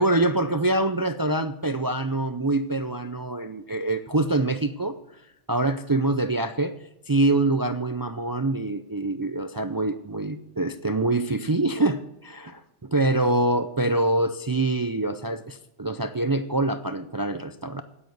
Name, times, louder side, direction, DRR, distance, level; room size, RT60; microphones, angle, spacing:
voice 1, 0.0-5.0 5.5-6.7 7.1-12.6 12.9-17.8, right 2 dB, 35° right, 10 dB, 0.3 m, -25 dB
9.3 x 8.8 x 7.9 m, 0.85 s
omnidirectional pair, 1.2 m